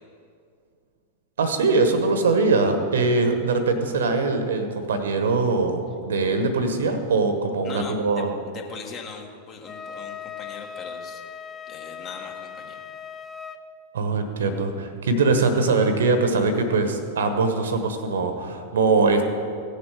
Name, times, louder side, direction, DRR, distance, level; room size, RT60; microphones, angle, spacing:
voice 1, 1.4-8.3 13.9-19.2, right 3 dB, 65° right, 7 dB, 1.2 m, -22 dB
voice 2, 7.6-11.2 11.7-12.8 15.4-15.5, left 5 dB, 30° left, 2 dB, 1.7 m, -40 dB
Wind instrument woodwind instrument, 9.6-13.6, left 7 dB, 15° left, 0.7 m, -38 dB
16.5 x 6.8 x 4.9 m, 2.3 s
figure-of-eight pair, 90°, 0 cm